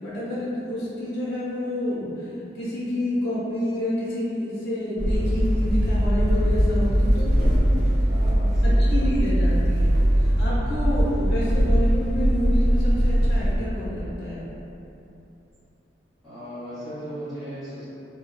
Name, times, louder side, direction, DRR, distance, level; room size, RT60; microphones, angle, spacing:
voice 1, 0.0-2.3 2.5-7.8 8.6-14.4, left 1 dB, 65° left, -9 dB, 0.7 m, -29 dB
sound 1, 5.0-13.6, equal, 60° right, 0.5 m, -20 dB
voice 2, 7.3-7.6 8.1-9.1 16.2-17.8, equal, ahead, -18 dB, 0.8 m, -37 dB
3.5 x 2.0 x 2.3 m, 2.9 s
head